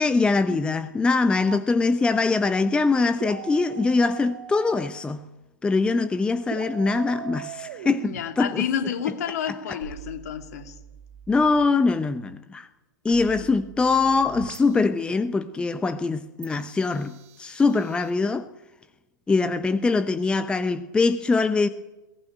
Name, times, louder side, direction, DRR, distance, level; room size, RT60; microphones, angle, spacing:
voice 1, 0.0-5.3 5.6-8.6 9.5-9.8 11.3-12.7 13.0-18.5 19.3-21.7, left 3 dB, 10° left, 0.8 m, -23 dB
sound 1, 1.5-1.6 3.2-4.9 6.5-8.2 9.8-11.5 13.1-14.8 16.4-18.1, right 10 dB, 45° right, 2.2 m, -41 dB
voice 2, 8.0-10.7 13.4-13.5, left 8 dB, 50° left, 2.7 m, -30 dB
21.5 x 18.5 x 9.0 m
figure-of-eight pair, 100°, 11 cm